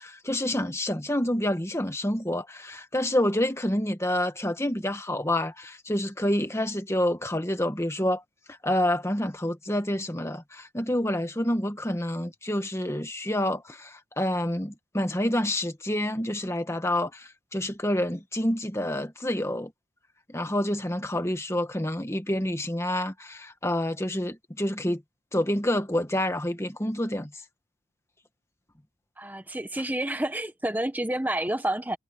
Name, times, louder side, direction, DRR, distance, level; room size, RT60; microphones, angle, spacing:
voice 1, 0.0-8.2 8.6-19.7 20.3-25.0 25.3-27.3, left 1 dB, 15° left, 1.5 m, -28 dB
voice 2, 29.2-32.0, right 1 dB, 10° right, 1.0 m, -29 dB
head